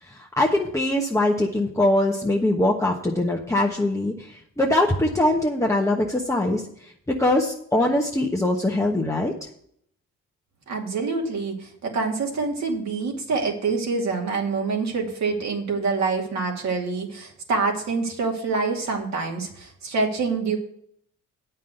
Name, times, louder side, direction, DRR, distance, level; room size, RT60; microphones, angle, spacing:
voice 1, 0.0-9.3, left 1 dB, 10° left, -1 dB, 1.2 m, -22 dB
voice 2, 10.7-20.6, right 4 dB, 65° right, 1 dB, 2.5 m, -26 dB
8.6 x 5.6 x 7.8 m, 0.66 s
cardioid pair, 90°, 30 cm